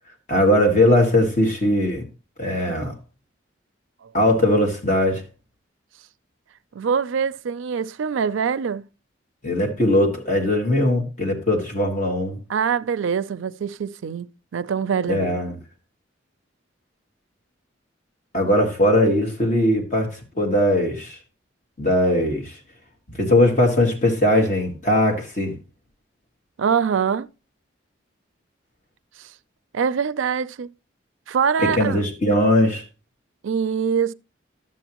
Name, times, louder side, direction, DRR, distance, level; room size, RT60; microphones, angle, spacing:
voice 1, 0.3-2.0 2.4-2.9 4.1-5.2 9.4-12.4 15.1-15.6 18.3-21.2 21.8-22.6 23.1-25.6 31.6-32.8, left 1 dB, 40° left, 1.8 m, -20 dB
voice 2, 6.7-8.8 12.5-15.4 26.6-27.3 29.2-29.3 29.7-30.7 31.3-32.0 33.4-34.1, right 6 dB, 85° right, 0.4 m, -24 dB
11.5 x 7.5 x 2.9 m
head